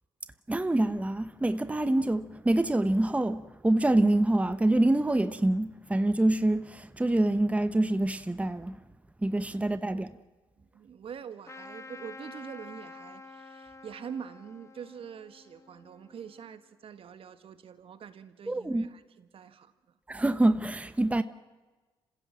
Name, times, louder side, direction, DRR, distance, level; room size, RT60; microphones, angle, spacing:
voice 1, 0.5-8.8 9.2-10.1 18.5-18.9 20.1-21.2, right 1 dB, 10° right, 1.0 m, -26 dB
voice 2, 9.5-10.1 10.6-19.7, right 7 dB, 60° right, 1.6 m, -45 dB
Trumpet, 11.4-16.5, left 3 dB, 30° left, 1.7 m, -49 dB
27.0 x 16.0 x 7.5 m
supercardioid pair, 55°, 11 cm